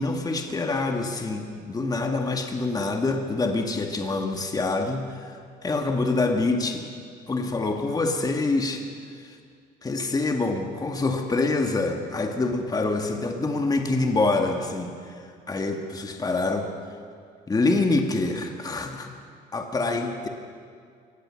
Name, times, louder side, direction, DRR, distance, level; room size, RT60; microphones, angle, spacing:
voice 1, 0.0-6.9 7.3-8.9 9.2-9.4 9.8-16.7 17.5-19.1 19.5-20.3, left 3 dB, 20° left, 4 dB, 2.0 m, -26 dB
24.0 x 19.0 x 6.4 m, 2.2 s
cardioid pair, 110°, 17 cm